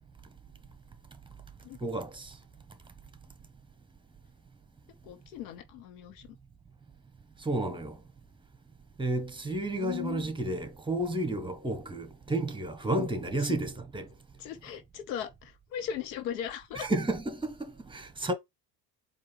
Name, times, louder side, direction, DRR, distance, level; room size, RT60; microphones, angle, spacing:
voice 1, 1.8-2.4 7.4-8.0 9.0-14.1 16.7-18.3, right 2 dB, 10° right, 1.1 m, -32 dB
voice 2, 5.0-6.3 9.8-10.2 12.9-13.1 14.4-16.9, left 9 dB, 85° left, 1.1 m, -38 dB
4.5 x 2.6 x 3.1 m
supercardioid pair, 75°, 50 cm